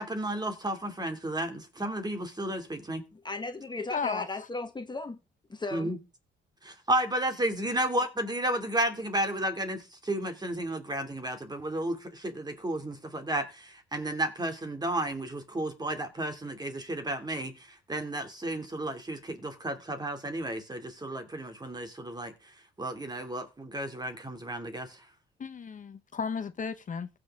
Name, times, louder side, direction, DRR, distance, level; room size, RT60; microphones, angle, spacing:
voice 1, 0.0-3.0 5.7-6.0 6.6-17.5 17.9-22.3 22.8-25.0, right 1 dB, 20° right, 2.7 m, -32 dB
voice 2, 3.1-5.2 5.5-5.9, left 3 dB, 20° left, 1.4 m, -36 dB
voice 3, 3.9-4.2 25.4-27.1, left 6 dB, 40° left, 0.9 m, -34 dB
15.5 x 6.1 x 3.7 m
cardioid pair, 90°, 20 cm